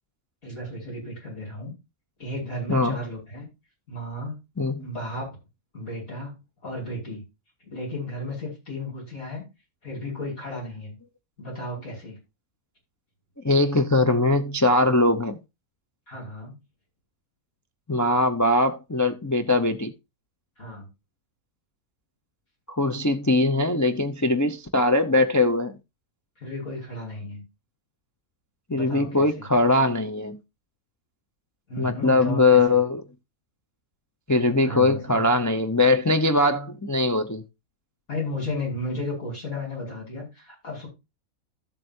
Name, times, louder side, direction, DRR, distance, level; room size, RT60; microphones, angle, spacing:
voice 1, 0.4-1.7 2.2-3.4 3.9-4.4 4.8-5.4 5.7-6.4 6.6-7.2 7.6-9.4 9.8-10.9 11.4-12.2 16.1-16.6 20.6-20.9 26.4-27.4 28.7-29.3 31.7-32.8 34.6-35.2 38.1-40.9, left 1 dB, 75° left, 6.4 m, -34 dB
voice 2, 4.6-4.9 13.4-15.4 17.9-19.9 22.7-25.8 28.7-30.4 31.8-33.0 34.3-37.4, left 2 dB, 25° left, 0.4 m, -21 dB
13.5 x 7.8 x 2.7 m
omnidirectional pair, 1.5 m